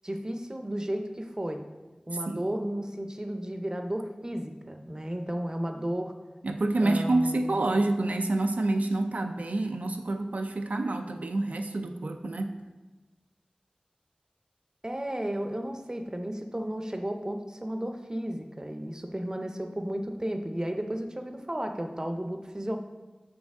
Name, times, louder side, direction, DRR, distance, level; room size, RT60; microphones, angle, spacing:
voice 1, 0.0-1.6 2.1-6.1 6.8-7.7 14.8-22.8, right 1 dB, 25° right, 5 dB, 0.6 m, -33 dB
voice 2, 6.4-12.6, right 2 dB, 75° right, 5 dB, 0.3 m, -28 dB
6.4 x 4.5 x 3.5 m, 1.2 s
wide cardioid pair, 55°, 3 cm